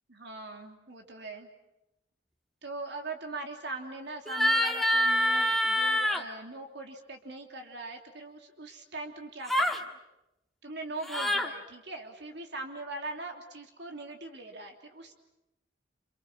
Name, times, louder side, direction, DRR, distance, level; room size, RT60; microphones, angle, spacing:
voice 1, 0.1-1.5 2.6-10.0 10.6-15.1, right 2 dB, 65° right, 4 dB, 3.2 m, -41 dB
sound 1, 4.3-6.2 9.5-9.8 11.0-11.5, left 1 dB, ahead, 1.8 m, -26 dB
28.5 x 28.0 x 6.3 m, 0.91 s
head